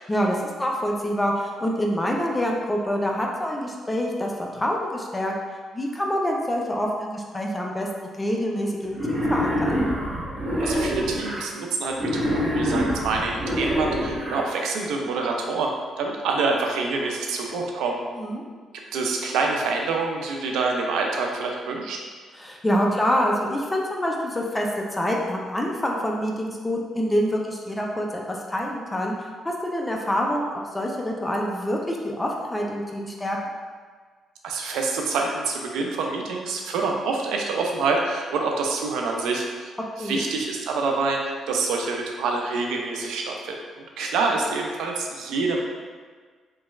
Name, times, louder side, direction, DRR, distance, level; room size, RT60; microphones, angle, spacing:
voice 1, 0.1-5.3 5.7-7.9 8.2-9.8 18.2-18.4 22.3-33.4 40.0-40.2, equal, 15° left, -1 dB, 0.4 m, -26 dB
Wild animals, 8.9-11.4 11.9-14.4, equal, 40° right, 1.1 m, -25 dB
voice 2, 10.6-18.0 18.9-22.0 34.4-39.7 40.0-45.6, right 3 dB, 85° right, 1 dB, 0.4 m, -26 dB
3.1 x 2.3 x 3.1 m, 1.5 s
cardioid pair, 90°, 0 cm